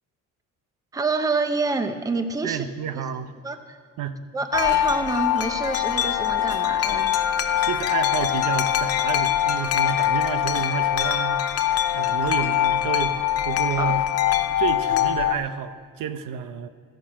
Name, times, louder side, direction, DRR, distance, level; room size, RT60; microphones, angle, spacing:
voice 1, 0.9-2.7 3.4-3.8 4.3-7.1 13.8-13.9, right 3 dB, 10° right, 8 dB, 0.7 m, -27 dB
voice 2, 2.4-3.3 4.0-4.2 7.6-11.5 11.9-14.0 14.6-16.7, right 7 dB, 80° right, 10 dB, 0.9 m, -30 dB
Wind chime, 4.5-15.3, left 11 dB, 50° left, 0.7 m, -23 dB
14.0 x 10.5 x 6.3 m, 2.1 s
cardioid pair, 175°, 32 cm